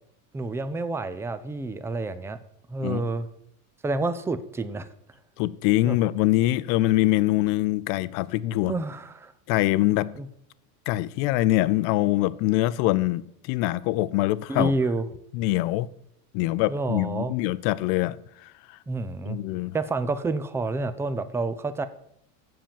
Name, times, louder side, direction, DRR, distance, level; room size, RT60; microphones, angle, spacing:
voice 1, 0.3-2.4 2.7-3.3 3.8-4.9 5.8-6.0 8.7-9.3 10.2-10.3 14.5-15.1 16.7-17.3 18.9-19.4 19.7-21.9, right 3 dB, 5° right, 12 dB, 0.3 m, -29 dB
voice 2, 5.4-8.7 9.5-10.1 10.9-14.7 15.3-15.9 16.3-18.2 18.4-18.8 19.3-19.8, left 17 dB, 60° left, 17 dB, 0.6 m, -24 dB
7.6 x 7.0 x 7.4 m, 0.74 s
supercardioid pair, 120°, 45 cm